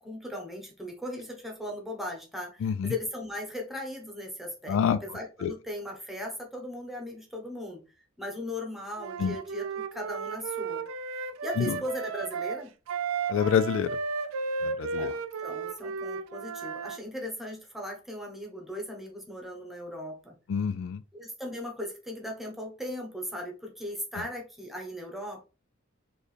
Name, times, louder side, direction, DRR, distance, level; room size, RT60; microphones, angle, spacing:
voice 1, 0.0-7.8 8.2-10.8 11.4-12.7 14.9-20.3 21.1-25.5, left 1 dB, ahead, 1.1 m, -38 dB
voice 2, 2.6-2.9 4.7-5.5 9.2-9.4 11.6-11.8 13.3-14.0 14.6-15.1 20.5-21.0 24.2-24.3, left 7 dB, 65° left, 0.3 m, -27 dB
Wind instrument woodwind instrument, 9.0-17.0, right 5 dB, 80° right, 0.4 m, -34 dB
4.4 x 3.1 x 3.3 m
head